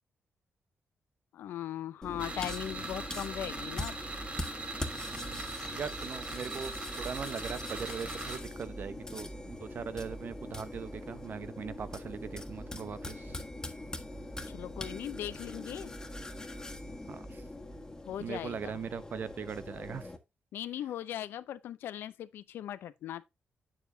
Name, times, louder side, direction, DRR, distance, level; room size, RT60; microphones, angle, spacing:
voice 1, 1.3-4.0 14.4-16.0 18.1-18.7 20.5-23.2, left 11 dB, 85° left, 0.6 m, -39 dB
sound 1, 2.0-20.2, left 1 dB, 15° left, 1.7 m, -42 dB
sound 2, 2.2-8.4, right 3 dB, 35° right, 4.5 m, -41 dB
voice 2, 5.1-13.4 17.1-17.4 18.2-20.1, right 6 dB, 60° right, 0.9 m, -40 dB
8.3 x 7.5 x 2.7 m
cardioid pair, 70°, 4 cm